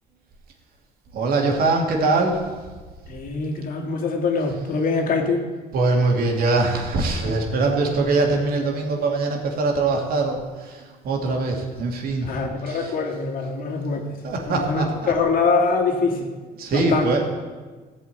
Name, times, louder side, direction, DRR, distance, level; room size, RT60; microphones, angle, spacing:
voice 1, 1.1-2.4 5.7-12.3 12.7-12.9 14.2-15.1 16.6-17.2, right 3 dB, 60° right, 1 dB, 2.7 m, -22 dB
voice 2, 3.1-5.4 12.2-14.1 14.5-16.3 16.7-17.1, left 4 dB, 55° left, 2 dB, 2.3 m, -23 dB
15.0 x 5.5 x 9.2 m, 1.3 s
cardioid pair, 110°, 17 cm